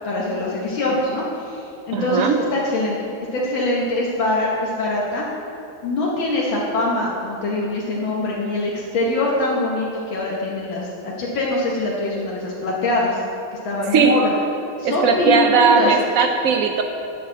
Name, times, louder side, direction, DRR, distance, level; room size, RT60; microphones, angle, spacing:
voice 1, 0.0-5.3 5.8-13.2 13.5-14.2 14.8-15.9, left 2 dB, 75° left, -4 dB, 1.8 m, -23 dB
voice 2, 1.9-2.4 13.9-14.1 14.8-16.8, right 6 dB, 85° right, 4 dB, 0.7 m, -18 dB
10.5 x 4.1 x 7.4 m, 2.7 s
omnidirectional pair, 2.2 m